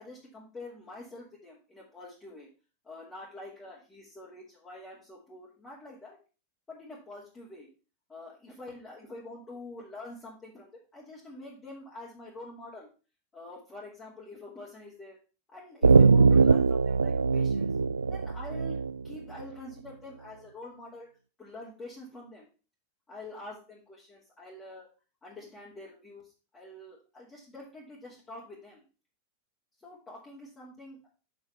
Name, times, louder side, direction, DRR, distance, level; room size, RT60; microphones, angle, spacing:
voice 1, 0.0-2.5 2.8-6.2 6.7-7.7 8.1-12.9 13.3-15.2 15.5-17.8 18.1-21.1 21.4-22.5 23.1-24.9 25.2-28.8 29.8-31.1, left 2 dB, 15° left, -6 dB, 2.6 m, -46 dB
sound 1, 15.8-19.4, right 4 dB, 75° right, 0.3 m, -21 dB
6.9 x 5.5 x 5.6 m, 0.34 s
figure-of-eight pair, 90°, 0 cm